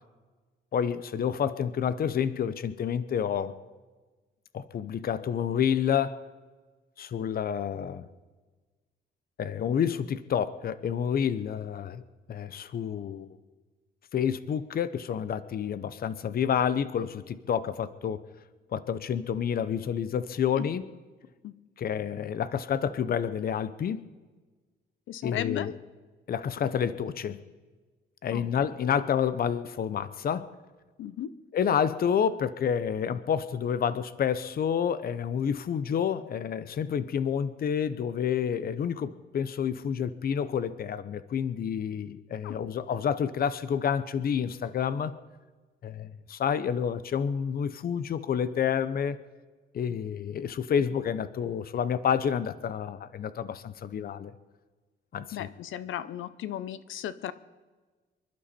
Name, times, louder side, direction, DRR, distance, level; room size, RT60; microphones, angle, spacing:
voice 1, 0.7-3.5 4.5-6.2 7.0-8.1 9.4-12.0 12.3-13.3 14.1-18.2 18.7-20.8 21.8-24.1 25.2-25.7 26.3-27.4 28.2-30.5 31.5-45.1 45.8-49.2 49.7-54.3 55.1-55.5, left 8 dB, 50° left, 14 dB, 0.7 m, -29 dB
voice 2, 25.1-25.7 28.3-28.4 31.0-31.3 42.4-42.6 55.3-57.3, left 11 dB, 85° left, 15 dB, 0.8 m, -35 dB
26.0 x 11.5 x 4.3 m, 1.3 s
cardioid pair, 140°, 20 cm